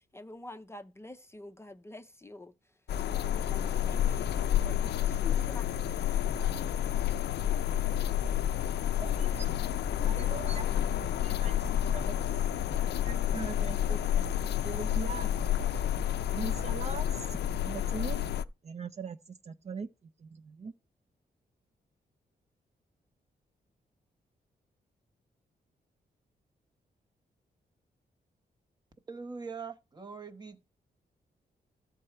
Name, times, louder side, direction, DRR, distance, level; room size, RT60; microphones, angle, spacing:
voice 1, 0.1-2.5 3.0-6.7, left 2 dB, 15° left, 0.5 m, -48 dB
sound 1, 2.9-18.4, left 10 dB, 90° left, 0.4 m, -30 dB
voice 2, 9.0-9.6 10.0-10.9 11.2-11.7 11.9-12.4 12.8-14.3 14.6-15.3 16.3-17.4 17.6-18.2 18.6-19.2 19.5-19.9 20.2-20.7, right 5 dB, 40° right, 0.5 m, -41 dB
voice 3, 29.1-30.6, right 5 dB, 25° right, 0.9 m, -42 dB
13.5 x 4.7 x 4.4 m
wide cardioid pair, 125°, 17 cm